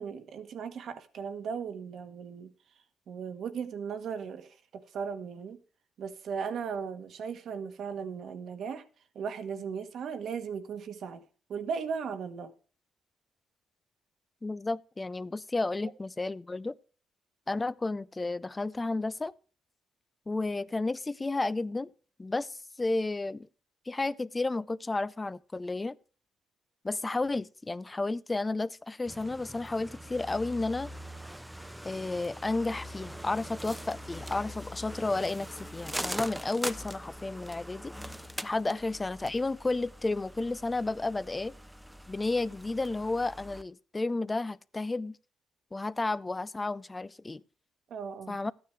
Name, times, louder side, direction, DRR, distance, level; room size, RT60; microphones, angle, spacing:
voice 1, 0.0-2.5 3.1-5.6 6.0-8.8 9.1-11.2 11.5-12.5 47.9-48.4, right 6 dB, 65° right, 1.3 m, -37 dB
voice 2, 14.4-16.7 17.5-19.3 20.3-21.9 22.2-23.5 23.9-26.0 26.8-30.9 31.8-37.9 38.4-41.5 42.1-45.2 45.7-47.4 48.3-48.5, left 2 dB, 20° left, 0.4 m, -32 dB
sound 1, 29.1-43.6, equal, 5° right, 0.7 m, -42 dB
13.0 x 9.4 x 3.2 m
cardioid pair, 90°, 0 cm